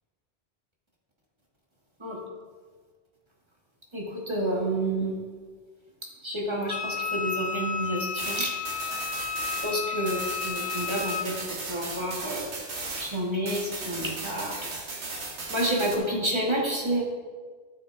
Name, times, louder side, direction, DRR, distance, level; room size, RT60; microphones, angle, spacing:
voice 1, 3.9-5.2 6.2-8.5 9.6-12.5 13.0-14.6 15.5-17.0, right 1 dB, 25° right, -3 dB, 1.8 m, -29 dB
Wind instrument woodwind instrument, 6.7-11.3, left 6 dB, 65° left, 0.9 m, -32 dB
sound 1, 8.2-13.2 13.5-16.0, right 3 dB, 90° right, 1.5 m, -36 dB
13.5 x 5.7 x 3.4 m, 1.5 s
omnidirectional pair, 1.1 m